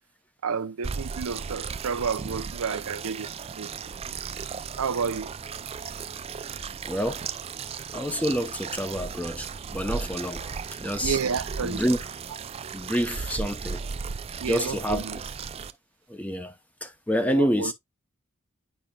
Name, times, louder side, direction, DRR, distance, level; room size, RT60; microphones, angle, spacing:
voice 1, 0.4-3.7 4.8-5.3 11.0-11.8 14.4-15.2 17.2-17.7, right 6 dB, 85° right, 0.6 m, -30 dB
sound 1, 0.8-15.7, right 5 dB, 30° right, 0.4 m, -36 dB
voice 2, 6.8-7.2 7.9-11.2 11.6-12.0 12.7-13.8 14.5-15.2 16.1-16.5 16.8-17.7, equal, 5° left, 0.7 m, -28 dB
8.8 x 5.0 x 2.3 m
head